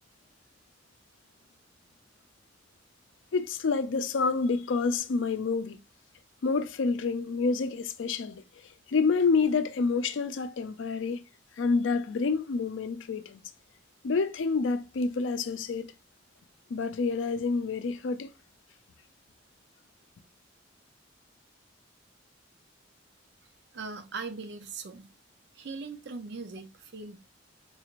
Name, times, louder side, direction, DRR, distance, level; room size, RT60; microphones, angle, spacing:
voice 1, 3.3-5.8 6.4-8.4 8.9-11.2 11.6-13.4 14.0-15.9 16.7-18.3, left 4 dB, 80° left, 0.4 m, -28 dB
voice 2, 23.7-25.1 25.5-27.2, right 4 dB, 65° right, 0.6 m, -40 dB
4.0 x 2.5 x 2.9 m
head